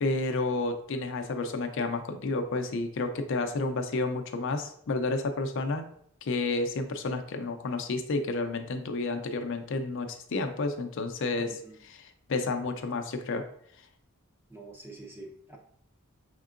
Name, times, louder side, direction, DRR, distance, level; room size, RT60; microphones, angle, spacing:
voice 1, 0.0-5.8 6.2-13.4, left 3 dB, 60° left, 6 dB, 0.5 m, -31 dB
voice 2, 11.4-11.8 14.5-15.6, right 2 dB, 10° right, 0 dB, 0.6 m, -46 dB
5.2 x 3.6 x 2.4 m, 0.66 s
head